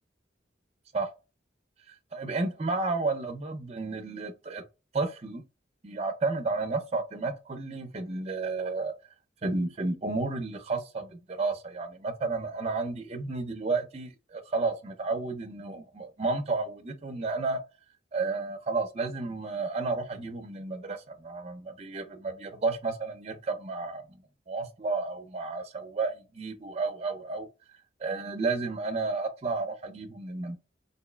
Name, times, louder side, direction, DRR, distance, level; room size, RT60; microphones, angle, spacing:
voice 1, 1.9-4.6 4.9-5.4 5.8-8.9 9.4-17.6 18.1-24.2 24.5-27.5 28.0-30.6, right 3 dB, 35° right, 0.5 m, -32 dB
3.9 x 2.7 x 2.2 m
head